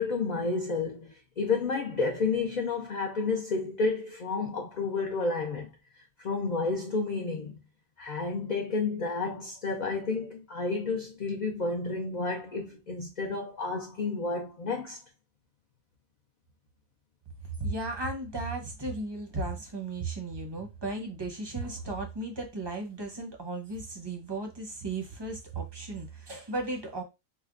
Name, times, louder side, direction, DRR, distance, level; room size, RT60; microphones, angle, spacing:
voice 1, 0.0-5.7 6.2-7.6 8.0-15.0, left 4 dB, 60° left, 0.5 m, -31 dB
voice 2, 17.6-27.0, right 2 dB, 25° right, 0.6 m, -35 dB
4.8 x 2.2 x 2.4 m
omnidirectional pair, 1.4 m